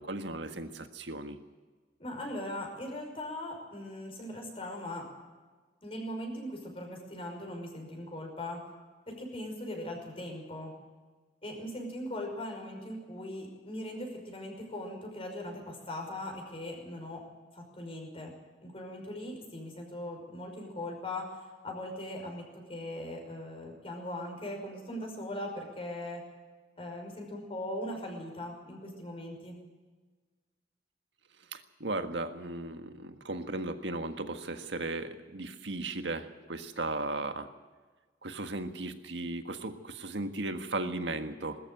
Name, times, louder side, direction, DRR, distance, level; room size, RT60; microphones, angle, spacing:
voice 1, 0.0-1.4 31.5-37.5 38.2-41.6, right 2 dB, 90° right, 7 dB, 1.7 m, -36 dB
voice 2, 2.0-5.1 5.8-8.7 9.1-10.8 11.4-17.2 17.5-18.4 18.6-26.3 26.8-29.6, left 1 dB, 35° left, 2 dB, 5.6 m, -40 dB
21.0 x 13.5 x 9.1 m, 1.3 s
head